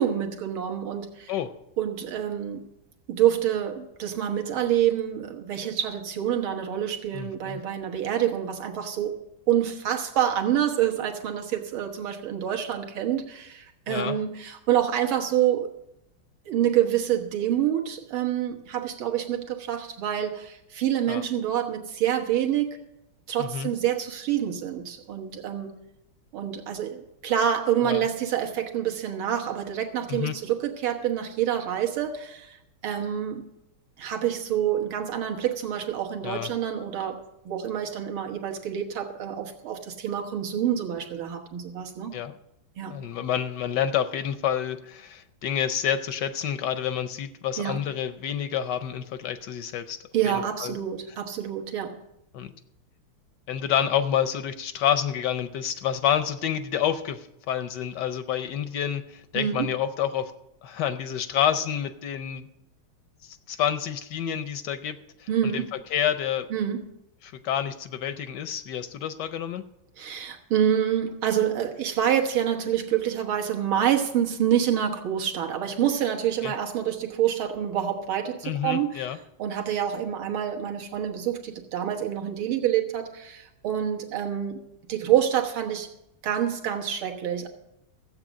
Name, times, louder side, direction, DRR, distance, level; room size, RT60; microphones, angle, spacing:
voice 1, 0.0-1.3 1.8-2.6 3.1-9.2 9.5-15.7 16.5-22.8 23.3-25.7 26.3-32.6 32.8-33.4 34.0-42.1 42.8-43.0 47.6-47.8 50.1-52.0 59.3-59.7 65.3-65.7 66.5-66.8 70.0-79.1 79.4-84.6 84.9-85.9 86.2-87.5, right 10 dB, 70° right, 3 dB, 2.1 m, -27 dB
voice 2, 7.1-7.6 13.9-14.2 21.1-21.2 23.4-23.7 27.8-28.0 30.1-30.3 36.2-36.5 42.1-42.3 42.9-50.0 50.3-50.8 52.3-52.5 53.5-60.3 60.6-62.5 63.2-65.6 65.9-66.5 67.2-69.6 76.4-76.5 78.4-79.2, left 9 dB, 70° left, 11 dB, 1.0 m, -28 dB
14.5 x 8.1 x 6.2 m, 0.85 s
omnidirectional pair, 2.4 m